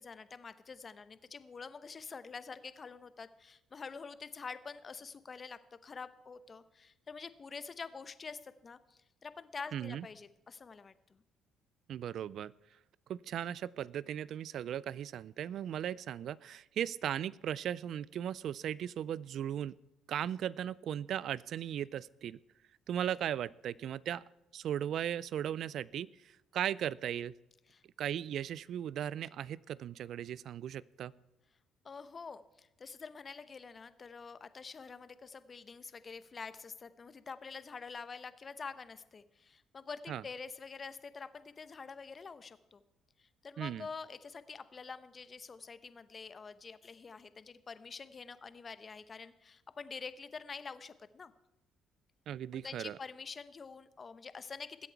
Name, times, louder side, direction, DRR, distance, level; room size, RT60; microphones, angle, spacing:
voice 1, 0.0-11.2 27.7-27.8 31.8-42.8 43.2-51.3 52.5-54.9, left 5 dB, 40° left, 13 dB, 0.9 m, -47 dB
voice 2, 9.7-10.1 11.9-12.5 13.1-19.7 20.1-22.4 22.9-24.2 24.5-27.3 28.0-31.1 40.1-40.2 43.6-43.9 52.3-53.0, right 10 dB, 65° right, 22 dB, 0.4 m, -37 dB
20.0 x 8.2 x 4.6 m, 0.90 s
hypercardioid pair, 60°, 0 cm